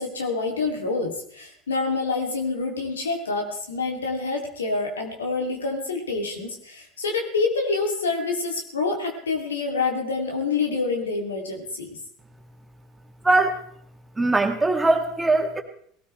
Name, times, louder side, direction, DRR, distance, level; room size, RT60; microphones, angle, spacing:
voice 1, 0.0-11.9, left 4 dB, 80° left, 2 dB, 2.7 m, -27 dB
voice 2, 13.2-13.6 14.2-15.6, right 2 dB, 10° right, 3 dB, 2.4 m, -21 dB
19.5 x 18.0 x 3.3 m, 0.63 s
figure-of-eight pair, 70°, 0 cm